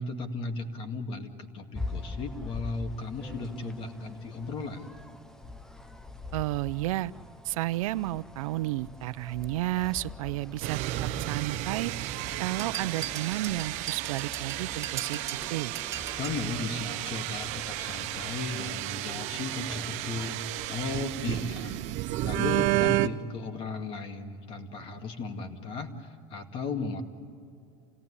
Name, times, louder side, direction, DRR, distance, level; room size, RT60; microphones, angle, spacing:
voice 1, 0.0-4.9 16.2-21.8 22.2-27.0, left 3 dB, 30° left, 6 dB, 2.1 m, -36 dB
sound 1, 1.7-20.4, left 2 dB, 5° left, 0.5 m, -44 dB
voice 2, 6.3-7.1 7.4-11.9 12.4-15.2 15.5-15.7, right 16 dB, 90° right, 16 dB, 0.6 m, -32 dB
sound 2, 10.6-23.1, right 17 dB, 45° right, 0.7 m, -32 dB
sound 3, 12.6-16.4, right 9 dB, 20° right, 2.4 m, -39 dB
28.5 x 18.0 x 9.8 m, 2.5 s
supercardioid pair, 165°, 17 cm